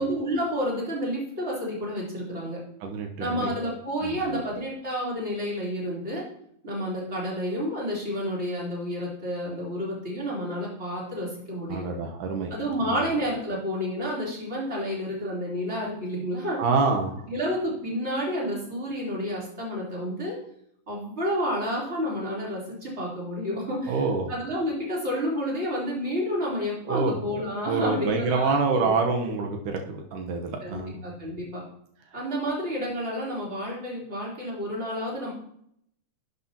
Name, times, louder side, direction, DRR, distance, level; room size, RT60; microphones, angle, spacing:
voice 1, 0.0-2.6 3.2-6.2 6.6-11.9 12.5-16.6 17.3-20.4 20.9-24.0 24.3-28.9 30.6-31.6 32.1-35.3, equal, 20° right, -5 dB, 3.6 m, -30 dB
voice 2, 2.8-3.5 4.0-4.3 11.7-12.5 12.8-13.1 16.6-17.2 23.9-24.3 26.9-27.1 27.7-31.0, right 4 dB, 85° right, 2 dB, 2.7 m, -27 dB
11.0 x 8.3 x 2.9 m, 0.70 s
omnidirectional pair, 3.6 m